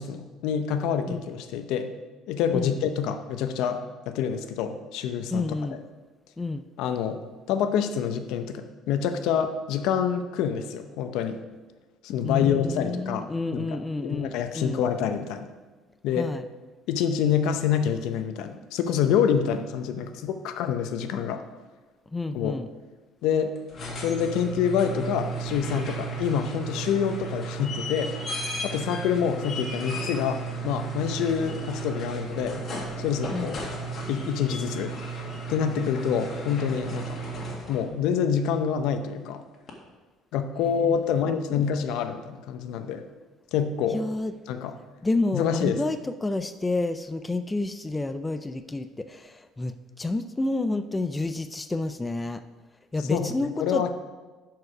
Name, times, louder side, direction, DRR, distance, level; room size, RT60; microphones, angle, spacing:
voice 1, 0.0-1.9 2.3-5.4 6.8-7.2 7.5-11.4 12.0-13.3 13.5-15.5 16.0-16.3 16.9-21.4 22.3-22.6 23.2-23.5 24.0-28.1 28.6-32.6 33.0-33.6 34.1-34.9 35.5-37.2 37.7-39.4 40.3-43.0 43.5-44.0 44.5-44.7 45.3-45.8 53.1-53.3 53.6-53.9, left 8 dB, 75° left, 8 dB, 0.7 m, -27 dB
voice 2, 5.3-5.8 6.4-6.6 12.2-14.8 16.1-16.4 22.1-22.7 33.3-33.5 40.6-41.7 43.9-44.3 45.0-52.4 52.9-53.9, left 2 dB, 10° left, 10 dB, 0.3 m, -30 dB
sound 1, 23.6-37.9 39.7-39.8, right 3 dB, 35° left, 1.7 m, -34 dB
11.0 x 4.7 x 4.8 m, 1.3 s
cardioid pair, 135°, 0 cm